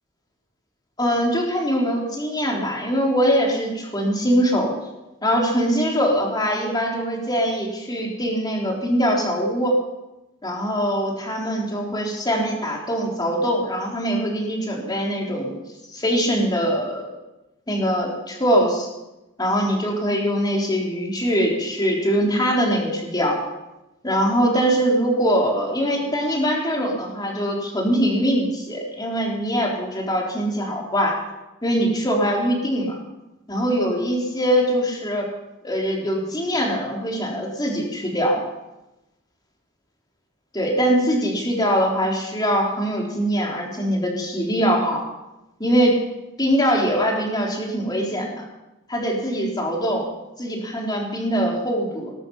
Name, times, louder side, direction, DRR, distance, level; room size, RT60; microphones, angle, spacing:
voice 1, 1.0-4.7 5.2-9.8 10.4-15.6 15.9-17.1 17.7-18.9 19.4-23.4 24.0-31.2 31.6-33.0 33.5-35.3 35.6-38.4 40.5-45.0 45.6-45.9 46.4-48.4 48.9-50.1 50.4-52.1, equal, 20° left, -1 dB, 3.8 m, -22 dB
19.5 x 12.5 x 5.7 m, 0.97 s
head